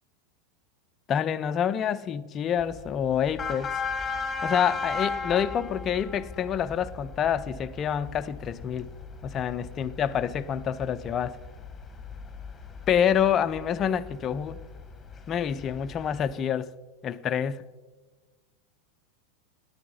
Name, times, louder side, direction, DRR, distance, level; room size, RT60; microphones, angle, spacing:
voice 1, 1.1-3.8 4.4-8.9 9.2-11.4 12.9-14.6 15.3-16.7 17.0-17.6, left 8 dB, 35° left, 0.6 m, -27 dB
sound 1, 2.6-16.3, left 4 dB, 15° left, 1.8 m, -37 dB
14.5 x 9.7 x 5.5 m
figure-of-eight pair, 90°, 0 cm